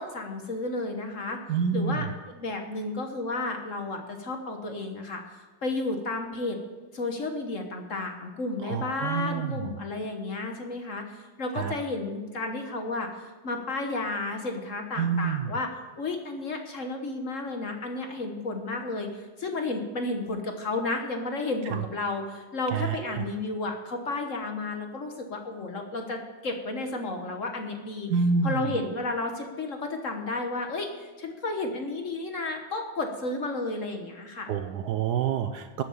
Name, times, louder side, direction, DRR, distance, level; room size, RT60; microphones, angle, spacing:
voice 1, 0.0-1.4 1.7-6.6 6.9-15.7 16.0-28.1 28.4-34.5, left 2 dB, 45° left, 4 dB, 1.3 m, -32 dB
voice 2, 1.5-2.1 8.6-9.7 11.5-11.7 15.0-15.5 21.7-21.8 22.7-23.2 28.1-28.7 34.5-35.8, right 6 dB, 65° right, 9 dB, 1.1 m, -28 dB
13.0 x 7.5 x 7.1 m, 1.3 s
omnidirectional pair, 2.1 m